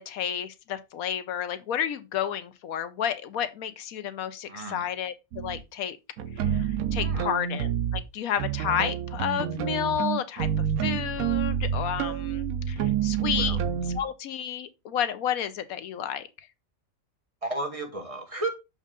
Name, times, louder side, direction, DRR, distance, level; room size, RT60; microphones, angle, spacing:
voice 1, 0.1-6.0 6.5-6.6 6.9-10.5 10.8-13.6 14.0-16.2, left 9 dB, 85° left, 1.2 m, -31 dB
voice 2, 4.5-4.9 7.0-7.3 13.4-13.6 17.4-18.5, right 2 dB, 25° right, 1.2 m, -33 dB
sound 1, 5.3-5.6 6.2-8.0 8.4-14.0, right 9 dB, 90° right, 1.2 m, -28 dB
6.5 x 5.1 x 3.7 m
omnidirectional pair, 1.4 m